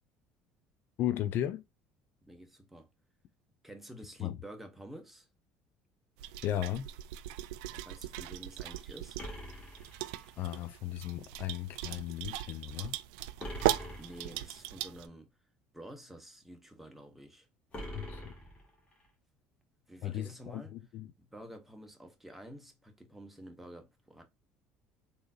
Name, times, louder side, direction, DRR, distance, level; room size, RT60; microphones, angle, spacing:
voice 1, 1.0-1.6 4.2-4.4 6.4-6.9 10.4-13.0 17.9-18.3 20.0-21.1, left 12 dB, 60° left, 0.4 m, -35 dB
voice 2, 2.2-2.9 3.6-5.3 7.7-9.2 14.0-17.5 19.9-20.7 21.3-24.2, equal, 5° right, 1.1 m, -50 dB
sound 1, 6.2-15.1, right 14 dB, 85° right, 0.3 m, -38 dB
sound 2, 9.2-10.6 13.4-14.6 17.7-19.1, equal, 30° left, 1.6 m, -44 dB
3.6 x 2.7 x 2.4 m
supercardioid pair, 95°, 4 cm